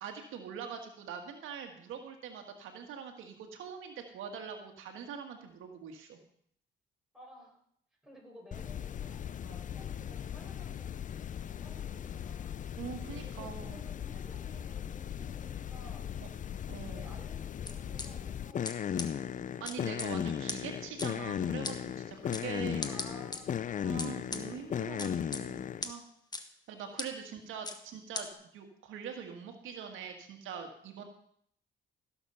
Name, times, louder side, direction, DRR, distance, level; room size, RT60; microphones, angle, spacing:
voice 1, 0.0-6.2 12.8-13.8 16.7-17.1 19.6-23.0 23.8-26.1 26.7-31.0, right 7 dB, 85° right, 5 dB, 1.6 m, -43 dB
voice 2, 7.1-7.6 8.0-12.6 13.0-16.1 16.9-19.3 22.8-24.0 26.7-27.0 31.0-31.1, right 1 dB, ahead, -3 dB, 5.6 m, -55 dB
sound 1, 8.5-25.9, left 9 dB, 40° left, 0.5 m, -37 dB
sound 2, 17.7-18.1 18.6-18.7 19.0-19.1 19.6-20.1 20.5-20.6 21.0-21.1 21.6-21.7 22.3-22.4 22.8-23.4 24.0-24.4 25.0-25.4 25.8-25.9 26.3-26.4 27.0-27.1 27.6-27.8 28.1-28.2, left 3 dB, 20° left, 1.2 m, -37 dB
16.0 x 7.1 x 5.5 m, 0.66 s
cardioid pair, 90°, 20 cm